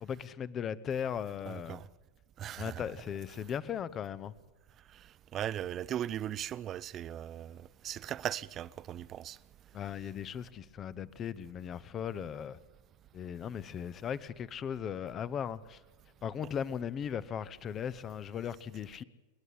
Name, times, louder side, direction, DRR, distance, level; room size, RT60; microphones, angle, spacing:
voice 1, 0.0-1.8 2.6-4.3 9.7-12.6 13.1-15.8 16.2-19.0, left 8 dB, 25° left, 0.8 m, -37 dB
voice 2, 1.5-1.9 2.4-2.8 5.3-9.4, right 11 dB, 30° right, 0.6 m, -38 dB
29.0 x 11.0 x 8.5 m
figure-of-eight pair, 90°, 0 cm